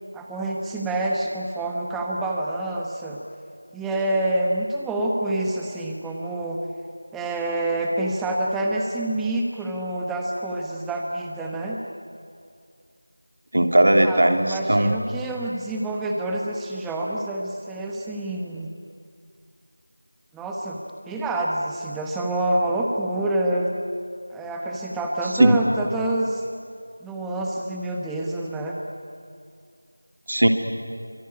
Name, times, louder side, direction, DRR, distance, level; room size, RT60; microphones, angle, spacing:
voice 1, 0.1-3.2 3.7-6.6 7.1-11.8 14.0-18.7 20.3-23.7 24.3-26.4 27.0-28.8, right 1 dB, 5° right, -1 dB, 1.1 m, -27 dB
voice 2, 13.5-14.9 25.4-25.6 30.3-30.5, right 1 dB, 60° right, 4 dB, 3.1 m, -17 dB
24.5 x 24.5 x 9.8 m, 2.3 s
figure-of-eight pair, 175°, 0 cm